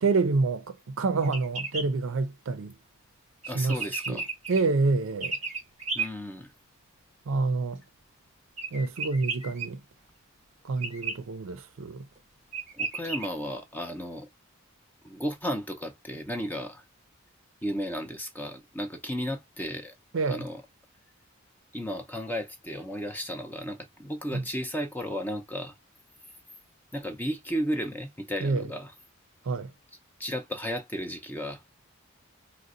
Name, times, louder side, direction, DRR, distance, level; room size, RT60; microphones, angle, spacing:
voice 1, 0.0-2.7 3.5-3.8 4.1-4.2 4.5-5.4 7.3-7.8 8.7-9.8 10.6-12.1 20.1-20.5 24.3-24.4 28.4-28.7 29.4-29.7, right 3 dB, 65° right, 0.5 m, -27 dB
sound 1, 1.2-1.9 3.4-4.6 5.2-6.1 8.6-9.7 10.8-11.2 12.2-12.3 12.5-13.3, right 4 dB, 30° right, 0.9 m, -33 dB
voice 2, 3.5-4.3 5.9-6.5 12.7-14.3 15.0-16.8 17.6-19.9 20.3-20.6 21.7-25.7 26.9-28.9 30.2-31.6, equal, 10° left, 0.5 m, -34 dB
3.7 x 2.1 x 2.4 m
head